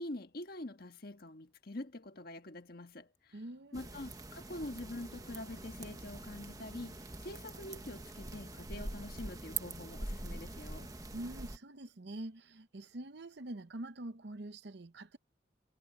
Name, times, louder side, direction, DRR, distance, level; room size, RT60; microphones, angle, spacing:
voice 1, 0.0-3.4 3.7-10.9, left 1 dB, 55° left, 1.5 m, -45 dB
voice 2, 3.3-3.9 11.1-15.2, right 1 dB, 60° right, 0.9 m, -45 dB
sound 1, 3.7-11.6, right 2 dB, 20° right, 1.3 m, -44 dB
head